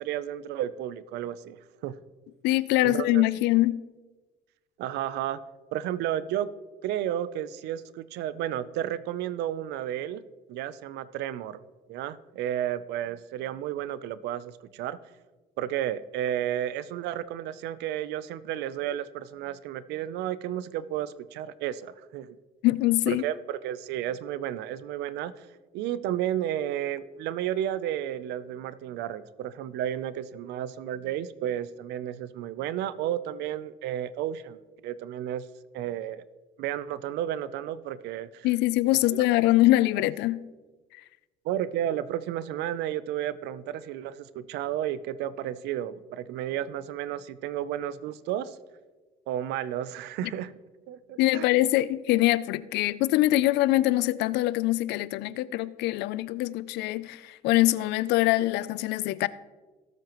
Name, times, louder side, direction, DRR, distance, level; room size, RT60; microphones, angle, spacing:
voice 1, 0.0-1.6 1.8-2.0 2.8-3.2 4.8-5.4 5.7-6.5 6.8-10.2 10.5-11.6 11.9-15.0 15.6-22.4 23.1-25.5 25.7-35.5 35.7-36.2 36.6-38.5 39.1-39.2 41.4-48.6 49.3-50.5 50.9-51.4, right 11 dB, 85° right, 0.6 m, -32 dB
voice 2, 2.4-3.8 22.6-23.2 38.4-40.4 51.2-59.3, left 16 dB, 85° left, 0.4 m, -23 dB
18.0 x 7.6 x 3.0 m
cardioid pair, 110°, 17 cm